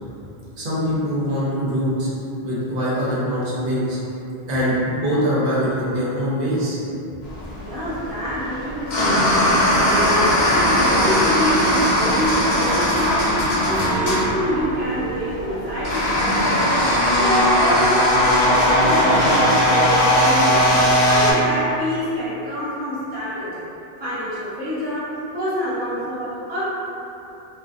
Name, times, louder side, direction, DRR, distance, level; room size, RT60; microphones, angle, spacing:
voice 1, 0.6-2.1 2.4-4.0 4.5-6.8, equal, 60° right, -8 dB, 0.7 m, -23 dB
sound 1, 7.2-21.3, equal, 55° left, 0.6 m, -19 dB
voice 2, 7.6-16.9 17.2-18.1 18.7-20.6 21.0-23.6 24.0-26.6, equal, 15° right, -11 dB, 0.4 m, -26 dB
Acoustic guitar, 13.7-18.6, right 3 dB, 30° left, 0.9 m, -33 dB
2.3 x 2.1 x 2.5 m, 2.8 s
omnidirectional pair, 1.1 m